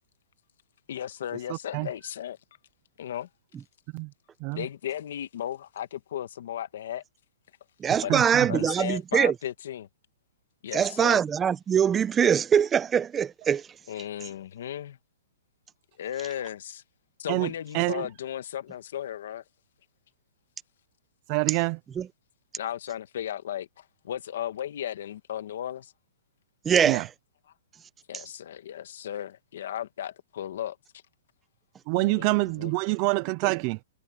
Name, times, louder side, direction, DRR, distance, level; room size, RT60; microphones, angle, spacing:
voice 1, 0.9-2.4 3.0-3.3 4.5-7.0 8.0-9.9 10.6-11.2 13.9-15.0 16.0-16.8 17.2-19.4 22.6-25.9 28.1-30.8 31.9-32.7, left 10 dB, 60° left, 1.5 m, -35 dB
voice 2, 1.5-1.9 3.9-4.1 4.4-4.7 7.9-8.5 17.3-17.5 17.7-18.1 21.3-21.8 26.8-27.0 31.9-33.8, right 26 dB, 30° right, 0.6 m, -26 dB
voice 3, 7.8-9.3 10.7-13.7 22.0-22.1 26.6-27.1 33.4-33.5, right 8 dB, 15° right, 0.9 m, -23 dB
hypercardioid pair, 160°, 0 cm